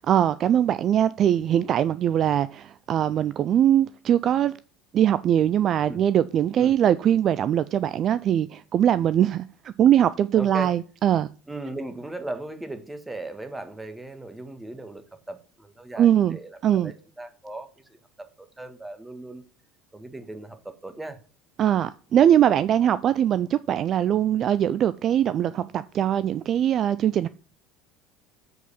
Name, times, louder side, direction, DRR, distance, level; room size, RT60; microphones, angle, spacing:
voice 1, 0.1-4.5 4.9-11.3 16.0-16.4 16.6-16.9 21.6-27.3, right 10 dB, 45° right, 16 dB, 0.3 m, -21 dB
voice 2, 10.3-10.8 11.5-19.5 19.9-21.2, right 2 dB, 10° right, 9 dB, 1.6 m, -38 dB
8.0 x 4.8 x 7.0 m, 0.37 s
figure-of-eight pair, 65°, 0 cm